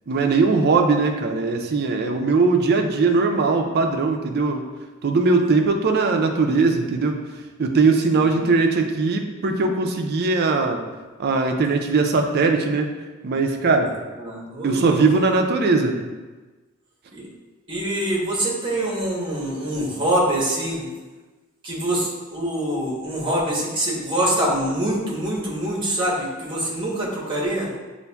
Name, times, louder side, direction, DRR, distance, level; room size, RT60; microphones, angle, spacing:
voice 1, 0.1-4.6 5.0-7.2 7.6-10.8 11.2-12.9 13.2-13.9 14.6-16.0, right 4 dB, 45° right, 4 dB, 0.4 m, -20 dB
voice 2, 8.1-8.4 14.1-15.0 17.1-17.3 17.7-20.9 21.6-27.7, right 1 dB, 20° right, -4 dB, 0.9 m, -25 dB
6.7 x 2.5 x 2.2 m, 1.3 s
head